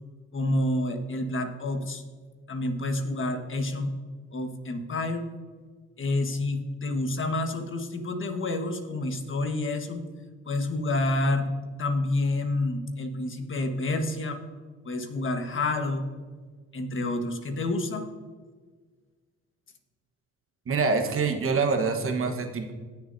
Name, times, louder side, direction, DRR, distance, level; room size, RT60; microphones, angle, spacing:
voice 1, 0.3-2.0 2.5-3.9 4.3-5.2 6.0-10.0 10.4-11.5 11.8-14.4 14.8-16.0 16.7-18.0, left 2 dB, 40° left, 5 dB, 1.4 m, -28 dB
voice 2, 20.7-22.7, right 4 dB, 45° right, 5 dB, 1.3 m, -25 dB
17.0 x 7.0 x 2.7 m, 1.5 s
cardioid pair, 90°, 30 cm